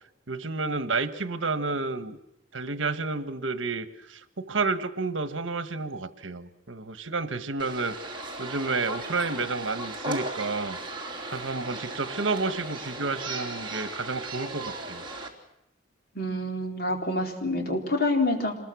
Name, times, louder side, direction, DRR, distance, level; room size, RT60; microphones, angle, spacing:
voice 1, 0.3-2.2 2.5-10.8 11.3-15.0, right 3 dB, 70° right, 11 dB, 1.4 m, -30 dB
sound 1, 7.6-15.3, right 2 dB, 25° right, 3.4 m, -36 dB
voice 2, 16.1-18.6, left 2 dB, 55° left, 2 dB, 4.2 m, -27 dB
26.5 x 21.0 x 6.3 m, 0.86 s
head